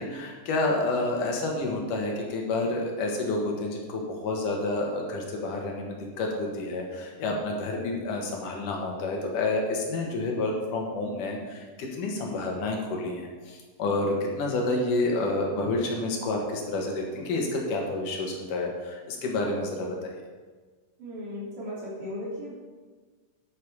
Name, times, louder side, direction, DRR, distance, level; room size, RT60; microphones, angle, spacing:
voice 1, 0.0-11.7 11.9-20.1, left 2 dB, 85° left, 0 dB, 3.2 m, -29 dB
voice 2, 21.0-22.5, left 1 dB, 80° right, -7 dB, 5.1 m, -36 dB
10.0 x 8.8 x 4.8 m, 1.4 s
omnidirectional pair, 3.6 m